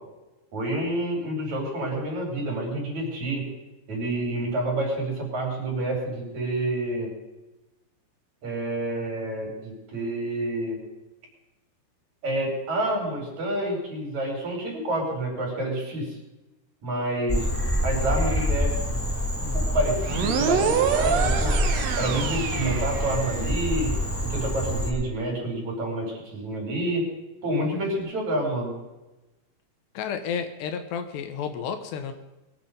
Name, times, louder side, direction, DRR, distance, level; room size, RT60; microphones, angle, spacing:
voice 1, 0.5-3.5 3.9-7.1 8.4-10.8 12.2-16.2 16.8-17.5 17.8-19.0 19.4-21.6 22.0-23.9 24.2-27.1 27.4-28.7, right 1 dB, 40° right, 0 dB, 6.3 m, -28 dB
Frog, 17.3-24.9, equal, 10° left, 0.8 m, -26 dB
sound 1, 20.0-23.5, right 7 dB, 80° right, 1.5 m, -26 dB
voice 2, 29.9-32.1, left 7 dB, 75° left, 7 dB, 3.1 m, -31 dB
23.0 x 9.3 x 5.4 m, 1.0 s
omnidirectional pair, 5.0 m